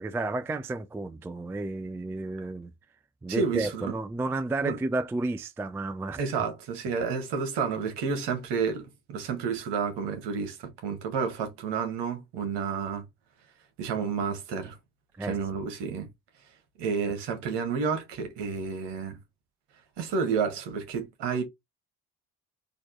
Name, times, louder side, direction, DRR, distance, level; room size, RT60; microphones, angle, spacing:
voice 1, 0.0-2.7 3.2-6.2 15.2-15.4 17.1-17.2, right 2 dB, 5° right, 0.3 m, -32 dB
voice 2, 3.3-4.0 4.6-4.8 6.2-13.1 13.8-14.8 15.2-16.1 16.8-19.2 20.0-21.4, right 5 dB, 55° right, 1.6 m, -30 dB
4.1 x 3.0 x 4.4 m
figure-of-eight pair, 45°, 49 cm